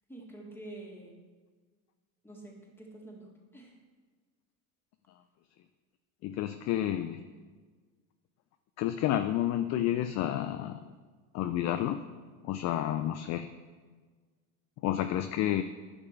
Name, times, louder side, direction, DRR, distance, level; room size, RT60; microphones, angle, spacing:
voice 1, 0.1-1.2 2.2-3.7, right 2 dB, 5° left, -1 dB, 1.9 m, -47 dB
voice 2, 6.2-7.2 8.8-10.9 11.3-12.0 12.4-13.5 14.8-15.6, left 12 dB, 40° left, 9 dB, 0.4 m, -30 dB
10.0 x 6.0 x 4.5 m, 1.4 s
supercardioid pair, 100°, 43 cm